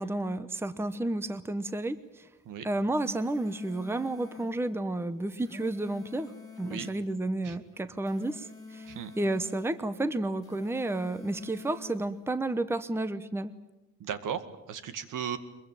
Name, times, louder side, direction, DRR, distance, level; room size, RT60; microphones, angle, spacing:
voice 1, 0.0-2.3 2.6-6.3 6.6-8.9 9.2-13.5, right 2 dB, 5° right, 13 dB, 0.9 m, -31 dB
sound 1, 2.7-4.5 5.2-7.0 7.9-9.7 10.3-12.0, left 3 dB, 10° left, 2.9 m, -47 dB
voice 2, 14.0-15.4, right 8 dB, 75° right, 11 dB, 2.1 m, -36 dB
23.5 x 22.5 x 9.1 m, 1.0 s
cardioid pair, 150°, 32 cm